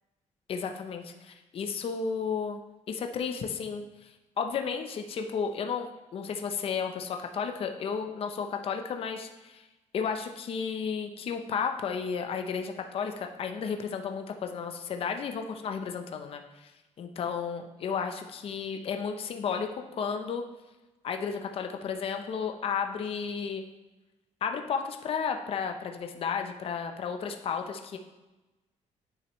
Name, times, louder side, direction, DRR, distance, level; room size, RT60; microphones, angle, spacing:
voice 1, 0.5-2.6 2.9-9.6 9.9-16.7 17.0-20.4 21.0-23.6 24.4-28.0, left 6 dB, 45° left, 5 dB, 0.6 m, -33 dB
8.7 x 6.4 x 3.0 m, 1.1 s
cardioid pair, 150°, 14 cm